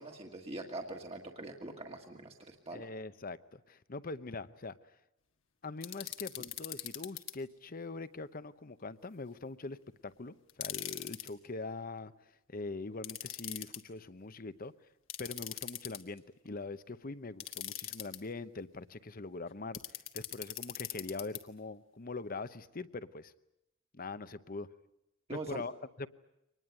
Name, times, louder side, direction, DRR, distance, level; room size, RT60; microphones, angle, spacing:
voice 1, 0.0-2.8 25.3-25.6, right 2 dB, 30° right, 1 dB, 1.7 m, -43 dB
voice 2, 2.7-4.8 5.6-12.1 12.5-14.7 15.2-19.8 20.1-23.3 23.9-24.7 25.3-26.1, left 3 dB, 45° left, 14 dB, 0.9 m, -42 dB
sound 1, 5.8-7.3 10.5-11.3 13.0-13.8 15.1-16.2 17.4-18.2 19.7-21.4, left 13 dB, 75° left, 1.7 m, -41 dB
24.5 x 20.0 x 9.4 m, 0.88 s
head